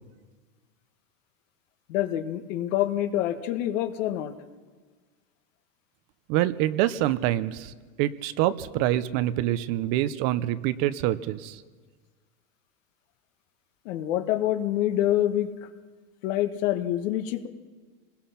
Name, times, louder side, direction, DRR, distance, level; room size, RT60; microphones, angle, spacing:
voice 1, 1.9-4.3 13.8-15.7 16.2-17.5, left 12 dB, 65° left, 8 dB, 1.7 m, -26 dB
voice 2, 6.3-7.7 8.0-11.6, right 13 dB, 45° right, 14 dB, 0.9 m, -26 dB
26.5 x 20.5 x 5.8 m, 1.4 s
supercardioid pair, 145°, 41 cm